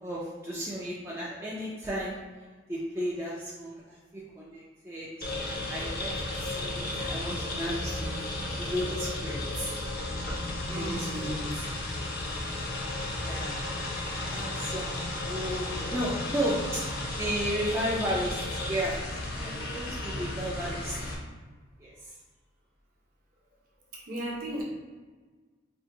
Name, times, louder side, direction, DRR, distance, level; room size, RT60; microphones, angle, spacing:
voice 1, 0.0-2.2 2.7-5.1 5.4-8.1 8.6-9.8 10.7-11.7 13.2-13.8 14.3-16.8 17.2-18.9 19.3-21.0 21.8-22.1, equal, 15° right, -7 dB, 0.4 m, -34 dB
sound 1, 5.2-21.1, left 2 dB, 50° left, 0.5 m, -34 dB
voice 2, 10.6-11.5 24.1-24.6, equal, 45° right, -3 dB, 0.8 m, -35 dB
2.7 x 2.5 x 3.7 m, 1.4 s
head